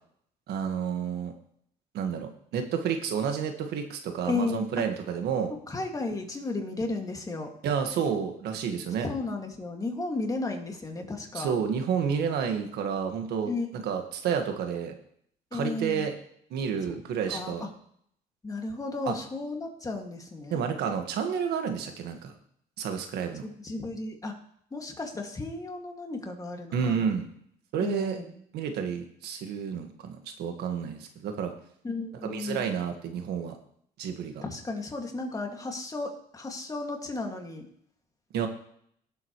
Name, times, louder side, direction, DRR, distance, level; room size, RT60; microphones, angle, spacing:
voice 1, 0.5-1.3 1.9-5.5 7.6-9.1 11.3-14.9 15.5-16.2 16.5-17.7 19.0-19.1 20.5-22.3 22.8-23.5 26.7-27.3 27.7-28.2 28.5-31.5 32.2-33.6 34.0-34.4 38.3-38.5, right 7 dB, 75° right, 5 dB, 1.6 m, -30 dB
voice 2, 4.3-4.7 5.7-7.5 9.0-11.5 13.5-13.7 15.5-16.0 17.3-17.7 18.4-20.6 23.4-24.3 24.7-27.1 27.8-28.2 31.8-32.7 34.4-37.7, left 3 dB, 20° left, 2 dB, 2.1 m, -34 dB
18.0 x 7.8 x 3.1 m, 0.67 s
cardioid pair, 110°, 17 cm